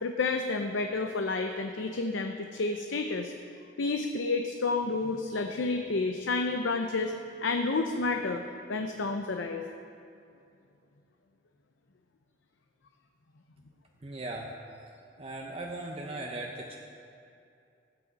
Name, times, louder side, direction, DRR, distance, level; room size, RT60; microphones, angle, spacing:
voice 1, 0.0-3.3 3.8-7.1 7.4-8.4 8.7-9.6, left 3 dB, 80° left, 5 dB, 0.6 m, -30 dB
voice 2, 14.0-14.6 15.2-16.8, right 2 dB, 30° right, -1 dB, 0.7 m, -38 dB
16.5 x 8.7 x 4.1 m, 2.6 s
head